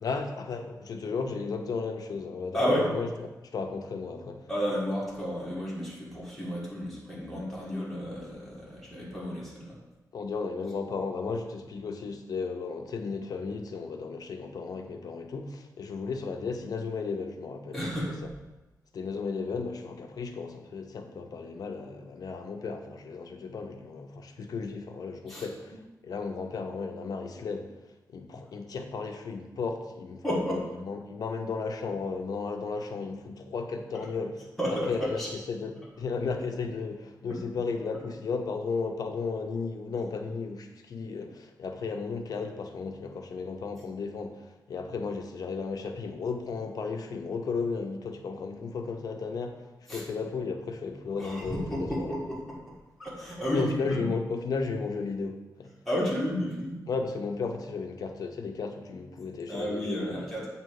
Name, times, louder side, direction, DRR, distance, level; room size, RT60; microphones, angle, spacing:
voice 1, 0.0-4.5 10.1-17.8 18.2-18.3 18.9-27.7 28.1-30.2 30.8-34.4 34.7-52.1 53.5-55.7 56.9-60.3, left 4 dB, 65° left, 5 dB, 0.6 m, -34 dB
voice 2, 2.5-2.9 4.5-9.8 17.7-18.1 25.3-25.4 30.2-30.7 34.6-35.3 37.3-37.4 49.9-50.0 51.2-52.7 53.0-54.1 55.8-56.8 59.5-60.5, equal, 5° left, -7 dB, 1.6 m, -32 dB
7.4 x 2.9 x 4.6 m, 1.1 s
wide cardioid pair, 145°, 7 cm